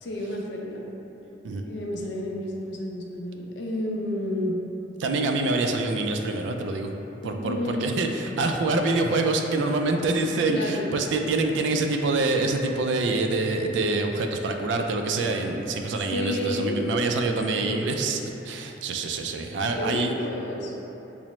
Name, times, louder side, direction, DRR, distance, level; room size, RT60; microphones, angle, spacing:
voice 1, 0.0-0.9 1.6-4.6 7.2-8.0 10.5-10.9 16.1-16.9 17.2-18.0 19.6-20.7, left 1 dB, 70° left, -1 dB, 0.5 m, -31 dB
voice 2, 5.0-6.9 7.2-18.2 18.4-20.1, right 3 dB, 80° right, 4 dB, 0.3 m, -26 dB
5.4 x 2.0 x 3.0 m, 3.0 s
head